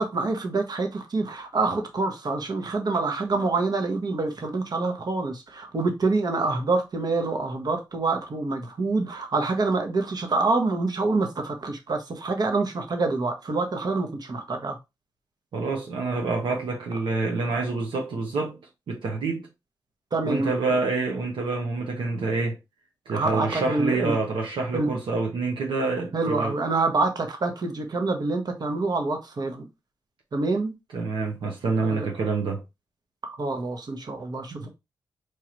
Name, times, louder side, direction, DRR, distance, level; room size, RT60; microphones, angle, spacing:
voice 1, 0.0-14.8 20.1-20.5 23.1-24.2 24.7-24.9 26.1-29.7 30.3-30.7 31.8-32.1 33.2-34.7, right 3 dB, 55° right, 1.1 m, -26 dB
voice 2, 15.5-18.6 18.9-19.5 20.2-22.6 23.1-26.5 30.9-32.6 34.6-34.7, right 3 dB, 80° right, 0.9 m, -27 dB
4.6 x 2.4 x 3.0 m
supercardioid pair, 50°, 8 cm